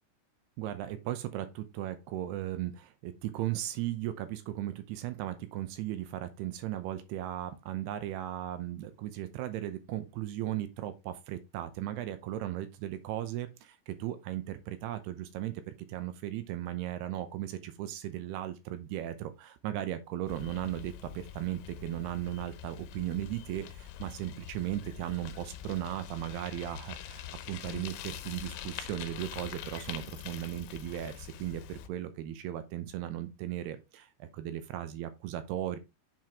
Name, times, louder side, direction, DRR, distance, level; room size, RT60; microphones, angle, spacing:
voice 1, 0.6-35.8, right 13 dB, 80° right, 2.6 m, -37 dB
Bicycle, 20.3-31.9, left 10 dB, 85° left, 3.0 m, -44 dB
7.7 x 4.6 x 3.5 m
omnidirectional pair, 5.2 m